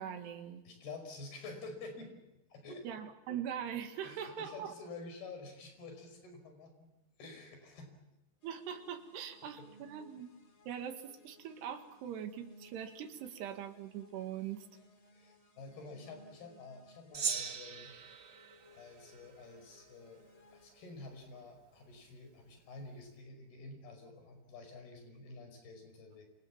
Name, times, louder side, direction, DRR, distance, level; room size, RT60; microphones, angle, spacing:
voice 1, 0.0-0.6 2.9-4.8 8.4-10.3 10.7-14.7, right 9 dB, 70° right, 6 dB, 3.9 m, -42 dB
voice 2, 0.7-2.2 2.5-2.9 4.0-6.9 7.2-7.9 9.6-9.7 15.1-17.9 18.7-20.2 20.5-26.3, left 3 dB, 60° left, 6 dB, 7.3 m, -49 dB
sound 1, 8.4-20.7, equal, 35° left, 3.2 m, -62 dB
Gong, 17.1-19.8, right 6 dB, 55° right, 1.5 m, -40 dB
28.0 x 27.5 x 7.3 m, 0.95 s
omnidirectional pair, 5.1 m